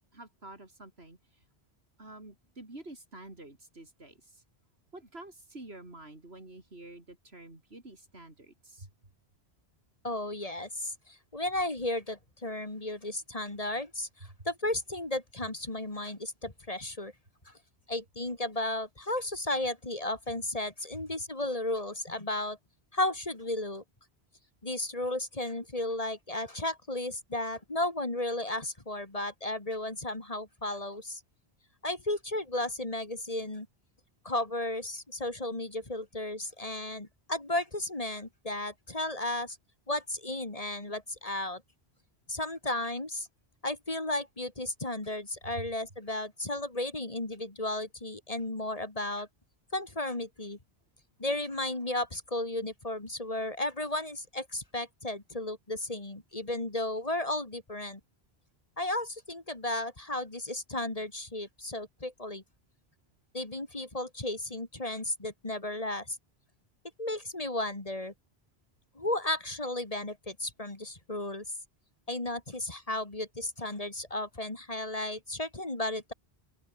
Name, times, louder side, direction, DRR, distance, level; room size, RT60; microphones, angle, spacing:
voice 1, 0.1-1.2 2.0-4.2 4.9-8.9 45.4-45.7, right 2 dB, 75° right, 5.3 m, -48 dB
voice 2, 10.0-14.1 14.5-17.1 17.5-17.6 17.9-22.6 22.9-23.8 24.6-31.2 31.8-33.7 34.2-39.6 39.9-41.6 42.3-43.3 43.6-49.3 49.7-50.6 51.2-58.0 58.8-62.4 63.3-66.2 67.0-68.1 69.0-71.4 72.1-76.1, left 1 dB, 35° left, 2.5 m, -34 dB
open air
omnidirectional pair, 1.1 m